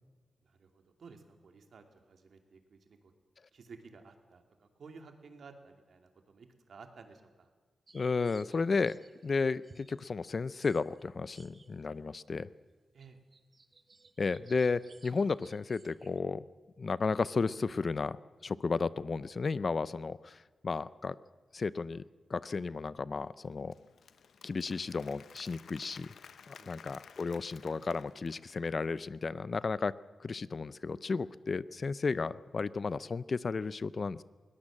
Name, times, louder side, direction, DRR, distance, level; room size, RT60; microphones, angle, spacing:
voice 1, 0.4-3.1 3.5-7.5 12.9-13.2 26.5-26.9, right 4 dB, 70° right, 5 dB, 2.6 m, -54 dB
voice 2, 7.9-12.5 14.2-16.4 16.8-18.2 18.4-21.2 21.5-22.0 22.3-23.7 24.4-26.1 26.5-29.9 30.2-34.2, left 4 dB, 45° left, 18 dB, 0.6 m, -33 dB
sound 1, 7.9-12.0 12.4-12.5 12.9-16.2, right 3 dB, 40° right, 1.3 m, -61 dB
Applause / Crowd, 23.5-28.9, left 7 dB, 75° left, 0.8 m, -55 dB
21.0 x 18.5 x 7.4 m, 1.4 s
cardioid pair, 90°, 0 cm